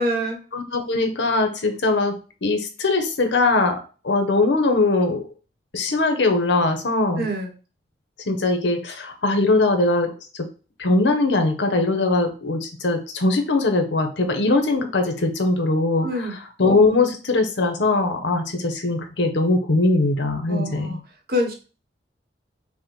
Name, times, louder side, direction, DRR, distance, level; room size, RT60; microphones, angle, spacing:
voice 1, 0.0-0.4 7.2-7.5 16.0-16.4 20.5-21.0 21.3-21.5, equal, 60° right, 2 dB, 1.0 m, -25 dB
voice 2, 0.5-5.2 5.7-7.3 8.3-10.5 10.8-21.0, left 2 dB, 75° left, 5 dB, 0.9 m, -21 dB
5.5 x 2.2 x 3.1 m, 0.35 s
head